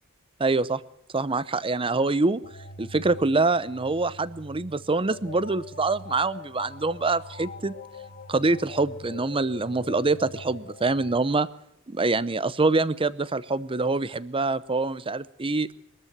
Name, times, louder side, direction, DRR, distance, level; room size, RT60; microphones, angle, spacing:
voice 1, 0.4-0.8 1.1-2.4 2.8-7.7 8.3-11.5 11.9-15.7, right 3 dB, 25° right, 17 dB, 0.7 m, -25 dB
sound 1, 2.4-11.2, left 2 dB, 45° left, 1.3 m, -43 dB
22.0 x 13.5 x 9.4 m, 0.78 s
head